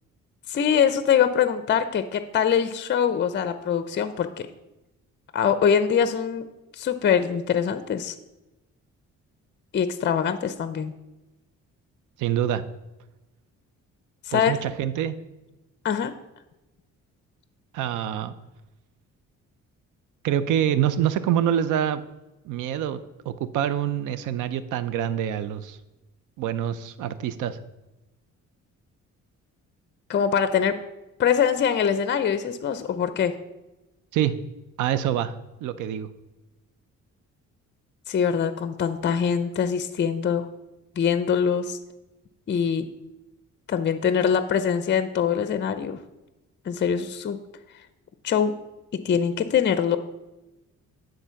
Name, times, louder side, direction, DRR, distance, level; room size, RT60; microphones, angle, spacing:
voice 1, 0.5-4.5 5.3-6.4 6.7-8.1 9.7-10.9 14.3-14.5 15.8-16.1 30.1-30.7 31.2-33.3 38.1-40.4 41.0-41.8 42.5-42.9 43.7-46.0 46.7-47.4 48.2-48.5 49.0-50.0, left 7 dB, 35° left, 11 dB, 0.5 m, -23 dB
voice 2, 12.2-12.6 14.3-15.2 17.7-18.3 20.2-22.0 22.4-25.8 26.4-27.6 34.1-34.3 34.8-35.3 35.6-36.1, right 10 dB, 90° right, 14 dB, 0.6 m, -26 dB
9.9 x 3.8 x 5.7 m, 1.0 s
cardioid pair, 90°, 30 cm